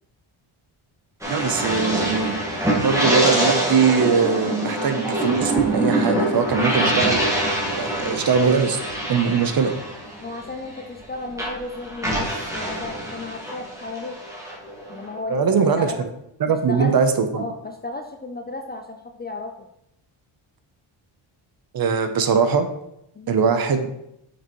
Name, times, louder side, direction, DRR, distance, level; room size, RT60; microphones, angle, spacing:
sound 1, 1.2-11.1 11.3-15.2, right 1 dB, 5° right, 1.5 m, -24 dB
voice 1, 1.3-2.4 2.8-7.2 7.8-8.8 9.1-9.7 15.3-15.9 16.4-17.4 21.7-22.7 23.3-23.9, right 6 dB, 45° right, 8 dB, 0.8 m, -21 dB
voice 2, 10.2-14.2 14.9-16.0 16.5-16.9 17.3-19.7 23.1-23.4, left 3 dB, 20° left, 4 dB, 0.4 m, -34 dB
6.6 x 6.2 x 3.0 m, 0.81 s
cardioid pair, 125°, 50 cm